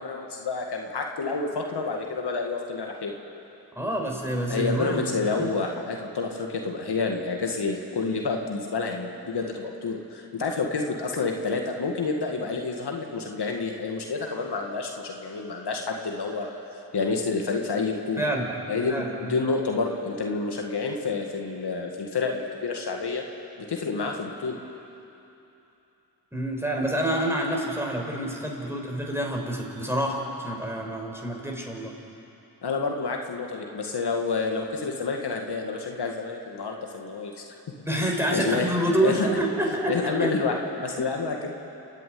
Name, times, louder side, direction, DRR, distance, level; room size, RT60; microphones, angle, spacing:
voice 1, 0.0-3.1 4.5-16.5 16.9-18.2 18.7-23.2 23.7-24.6 32.6-37.4 38.0-38.7 39.0-39.4 39.9-40.5 40.8-41.6, left 4 dB, 70° left, 1 dB, 2.2 m, -29 dB
voice 2, 3.8-5.5 18.2-18.5 18.9-19.4 26.3-31.9 37.9-40.4, right 1 dB, 5° right, 0 dB, 5.9 m, -27 dB
29.0 x 10.5 x 9.5 m, 2.9 s
supercardioid pair, 40°, 42 cm